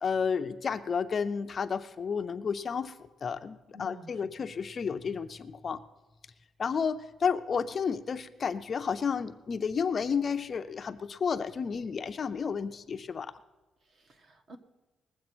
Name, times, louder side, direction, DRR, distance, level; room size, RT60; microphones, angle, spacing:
voice 1, 0.0-5.8 6.6-13.3, left 6 dB, 30° left, 10 dB, 0.5 m, -31 dB
voice 2, 3.7-4.5 13.8-14.6, right 2 dB, 45° right, 6 dB, 1.3 m, -52 dB
20.0 x 7.8 x 6.1 m, 1.2 s
cardioid pair, 180°, 0 cm